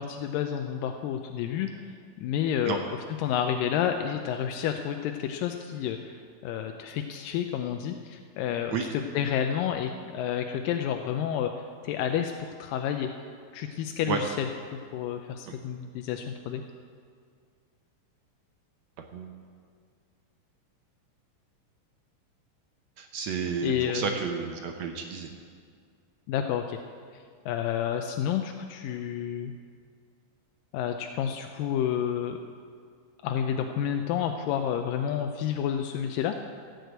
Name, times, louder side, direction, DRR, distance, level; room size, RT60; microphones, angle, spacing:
voice 1, 0.0-1.7 2.2-2.8 3.2-11.5 11.8-13.1 13.5-16.6 23.6-24.1 26.3-26.8 27.5-29.5 30.7-32.4 33.2-36.3, left 9 dB, 85° left, 5 dB, 2.3 m, -30 dB
voice 2, 23.0-25.3, right 6 dB, 70° right, 4 dB, 1.7 m, -31 dB
15.0 x 6.6 x 7.9 m, 2.1 s
omnidirectional pair, 3.9 m